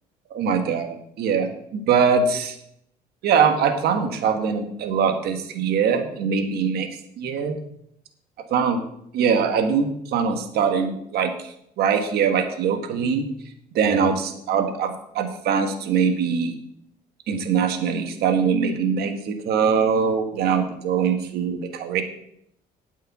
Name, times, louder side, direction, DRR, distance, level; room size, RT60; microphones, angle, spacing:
voice 1, 0.3-2.6 3.2-6.9 7.2-7.5 8.5-8.8 9.1-11.3 11.8-13.3 13.7-16.5 17.3-22.0, right 6 dB, 70° right, 6 dB, 1.4 m, -22 dB
9.0 x 5.5 x 8.2 m, 0.74 s
cardioid pair, 110°, 17 cm